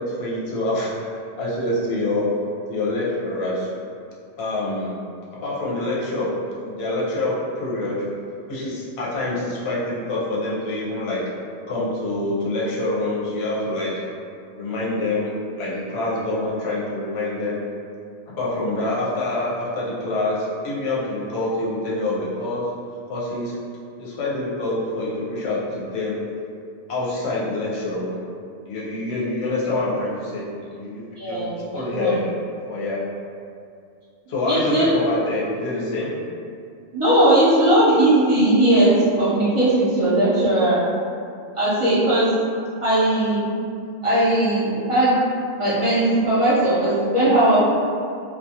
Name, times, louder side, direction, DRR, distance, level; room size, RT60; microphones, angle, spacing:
voice 1, 0.0-2.3 2.7-3.7 4.4-5.0 5.4-6.3 6.6-8.0 8.5-11.2 11.7-13.9 14.5-15.3 15.6-17.6 18.3-22.6 23.1-23.5 24.0-26.2 26.9-28.2 28.7-32.2 32.7-33.0 34.3-36.1, left 2 dB, 60° left, -6 dB, 0.9 m, -26 dB
voice 2, 31.2-32.2 34.5-34.9 36.9-40.8 41.5-42.3 42.8-43.5 44.0-45.2 45.5-47.6, right 1 dB, 30° right, -10 dB, 0.7 m, -18 dB
2.5 x 2.3 x 2.7 m, 2.4 s
omnidirectional pair, 1.3 m